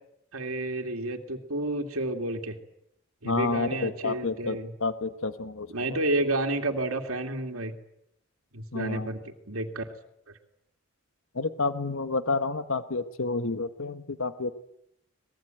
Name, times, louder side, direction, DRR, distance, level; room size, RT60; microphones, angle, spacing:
voice 1, 0.3-2.6 3.2-4.7 5.7-7.7 8.5-9.2 9.5-9.8, right 2 dB, 85° right, 4 dB, 2.6 m, -30 dB
voice 2, 3.2-6.0 8.7-9.1 11.3-14.5, left 3 dB, 75° left, 11 dB, 1.2 m, -30 dB
24.5 x 21.0 x 9.1 m, 0.78 s
head